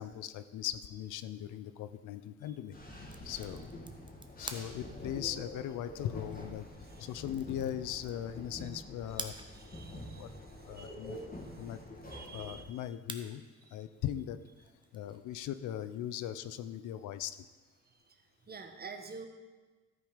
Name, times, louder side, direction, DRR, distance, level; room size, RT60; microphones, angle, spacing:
voice 1, 0.0-2.7 3.2-3.7 4.4-6.7 7.0-9.4 9.9-10.3 10.7-11.2 11.6-11.8 12.3-13.4 13.7-14.4 14.9-17.5, left 11 dB, 80° left, 13 dB, 0.5 m, -39 dB
sound 1, 2.7-12.6, left 1 dB, 30° left, 2.0 m, -47 dB
sound 2, 2.9-16.4, right 3 dB, 15° right, 0.8 m, -52 dB
voice 2, 9.5-10.4 10.6-11.5 12.1-12.6 18.5-19.3, right 5 dB, 30° right, 5 dB, 1.1 m, -48 dB
12.5 x 5.3 x 5.1 m, 1.3 s
cardioid pair, 90°, 30 cm